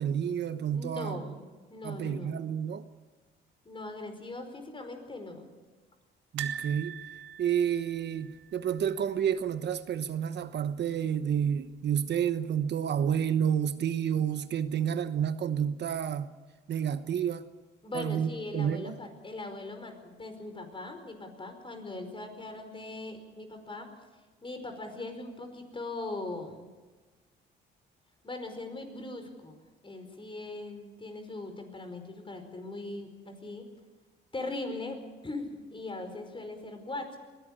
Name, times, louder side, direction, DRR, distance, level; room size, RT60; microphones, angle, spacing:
voice 1, 0.0-1.2 1.8-2.8 6.3-7.0 7.4-16.3 16.7-17.4 17.9-18.9, right 8 dB, 60° right, 1.0 m, -30 dB
voice 2, 0.7-1.4 1.7-2.4 3.6-5.5 17.8-23.9 24.4-26.7 28.2-33.7 34.3-35.0 35.2-37.2, left 2 dB, 25° left, 5.0 m, -40 dB
sound 1, 6.4-9.4 9.7-9.9 10.1-10.2 11.5-12.0 12.5-12.6, right 8 dB, 75° right, 1.7 m, -42 dB
22.0 x 16.5 x 8.8 m
cardioid pair, 90°, 20 cm